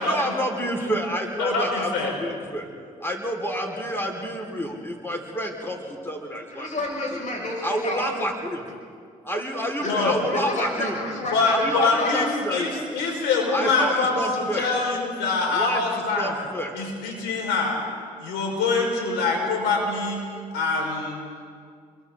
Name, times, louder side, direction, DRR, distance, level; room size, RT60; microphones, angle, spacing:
voice 1, 0.0-2.7 3.0-6.7 7.1-7.2 7.6-8.6 9.2-11.0 11.5-12.7 13.5-14.7 15.5-16.7, equal, 15° left, 1 dB, 4.6 m, -28 dB
voice 2, 1.4-2.2 9.8-10.2 11.3-16.3 16.7-17.8 18.2-20.3 20.5-21.2, left 3 dB, 80° left, 0 dB, 5.0 m, -24 dB
voice 3, 6.5-8.1 9.8-12.2 13.6-13.7, left 2 dB, 45° left, -1 dB, 6.4 m, -31 dB
29.5 x 23.0 x 3.9 m, 2.2 s
hypercardioid pair, 50°, 18 cm